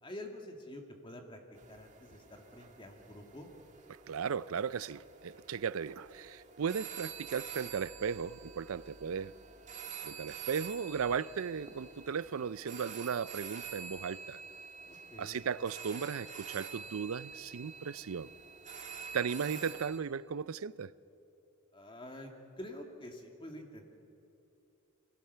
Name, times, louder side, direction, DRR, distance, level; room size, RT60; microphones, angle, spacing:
voice 1, 0.0-1.4 1.7-3.5 14.8-15.4 21.7-23.8, left 1 dB, 25° left, 2.1 m, -47 dB
sound 1, 1.5-20.0, right 6 dB, 35° right, 1.6 m, -48 dB
voice 2, 3.9-9.3 10.0-14.4 15.2-18.3 19.1-20.9, right 6 dB, 85° right, 0.5 m, -36 dB
24.0 x 16.5 x 6.8 m
head